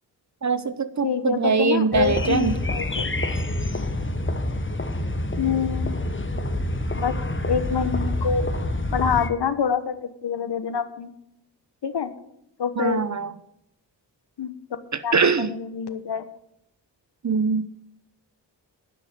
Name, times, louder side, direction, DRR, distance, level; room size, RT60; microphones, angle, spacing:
voice 1, 0.4-2.5 12.8-13.3 14.9-15.5 17.2-17.9, right 5 dB, 40° right, 14 dB, 0.8 m, -23 dB
voice 2, 1.0-3.1 5.4-6.4 6.9-7.1 7.5-8.5 8.9-9.9 10.2-11.1 11.8-12.1 12.6-13.0 14.4-14.5 15.0-16.2, left 7 dB, 60° left, 11 dB, 1.2 m, -26 dB
sound 1, 1.9-9.3, left 1 dB, 25° left, 1.5 m, -27 dB
11.0 x 6.1 x 9.0 m, 0.77 s
cardioid pair, 45°, 45 cm